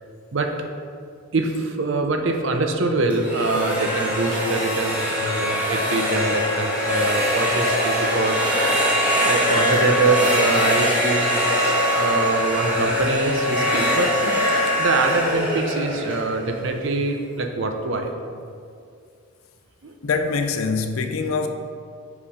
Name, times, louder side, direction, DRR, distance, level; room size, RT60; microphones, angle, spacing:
voice 1, 1.3-8.5 9.2-11.5 11.9-14.5 14.8-18.1 19.8-19.9, right 3 dB, 55° right, 0.6 m, -24 dB
sound 1, 3.1-17.0, equal, 5° right, 1.3 m, -22 dB
voice 2, 20.0-21.5, left 4 dB, 75° left, 0.5 m, -24 dB
5.4 x 4.9 x 4.9 m
head